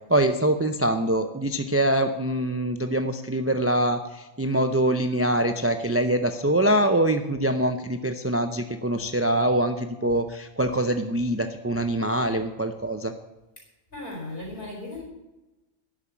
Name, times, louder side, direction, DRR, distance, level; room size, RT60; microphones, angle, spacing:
voice 1, 0.1-13.1, right 1 dB, 20° right, 7 dB, 0.4 m, -24 dB
voice 2, 13.9-15.0, left 2 dB, 50° left, -1 dB, 4.7 m, -36 dB
11.5 x 7.0 x 8.5 m, 1.0 s
omnidirectional pair, 1.3 m